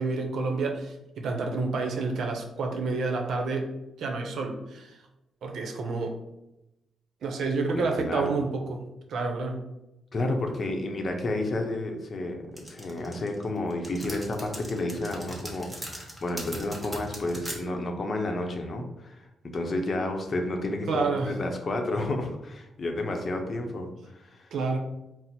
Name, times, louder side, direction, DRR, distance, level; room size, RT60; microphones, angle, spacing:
voice 1, 0.0-3.7 4.0-5.0 5.4-6.2 7.2-8.8 9.1-9.6 20.9-21.4 24.5-24.8, right 3 dB, 70° right, 2 dB, 0.7 m, -29 dB
voice 2, 7.7-8.4 10.1-19.3 19.5-24.5, left 2 dB, 40° left, 3 dB, 0.7 m, -31 dB
sound 1, 12.6-17.6, equal, 10° right, 1.0 m, -38 dB
4.4 x 2.0 x 4.1 m, 0.92 s
cardioid pair, 110°, 0 cm